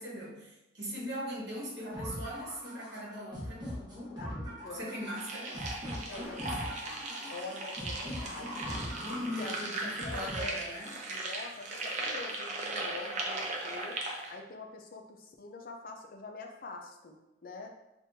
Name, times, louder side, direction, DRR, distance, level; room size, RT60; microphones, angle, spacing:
voice 1, 0.0-3.7 4.7-5.7 6.2-6.5 7.0-7.3 8.7-11.0, equal, 60° right, -4 dB, 1.2 m, -40 dB
sound 1, 1.9-10.9, equal, 25° right, 1.1 m, -42 dB
voice 2, 4.1-4.9 6.1-7.0 7.3-8.9 9.4-14.0 14.3-17.8, left 3 dB, 50° left, 3 dB, 0.5 m, -45 dB
sound 2, 5.2-14.3, right 2 dB, 40° right, 0.6 m, -38 dB
5.1 x 2.6 x 2.7 m, 0.95 s
head